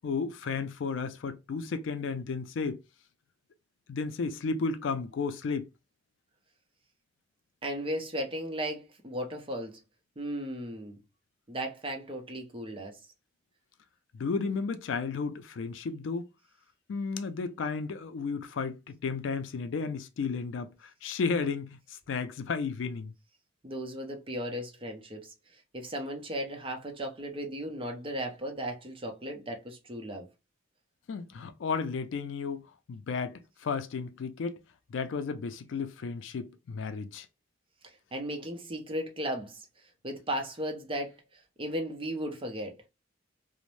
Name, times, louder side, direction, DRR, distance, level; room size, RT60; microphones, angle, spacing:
voice 1, 0.0-2.8 3.9-5.7 14.1-16.3 16.9-23.1 31.1-32.6 32.9-34.6 34.9-37.3, left 4 dB, 70° left, 0.4 m, -33 dB
voice 2, 7.6-9.8 10.2-11.0 11.5-13.0 23.6-25.3 25.7-30.3 38.1-39.6 40.0-41.1 41.6-42.7, equal, 30° right, 0.6 m, -36 dB
2.5 x 2.0 x 3.0 m
head